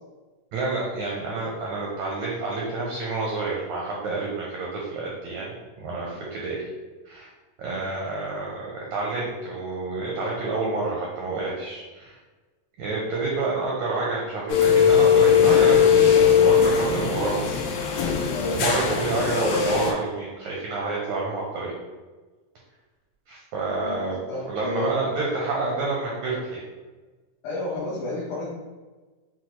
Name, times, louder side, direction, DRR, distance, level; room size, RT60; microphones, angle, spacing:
voice 1, 0.5-6.6 7.0-7.3 7.6-12.2 12.8-18.0 18.5-21.7 23.3-24.2 24.5-26.6, right 3 dB, 80° right, -3 dB, 1.6 m, -29 dB
sound 1, 14.5-19.9, left 7 dB, 90° left, 2.4 m, -19 dB
voice 2, 18.3-18.7 23.7-25.0 27.4-28.5, left 2 dB, 70° left, -8 dB, 2.1 m, -32 dB
6.2 x 2.1 x 2.9 m, 1.3 s
omnidirectional pair, 4.0 m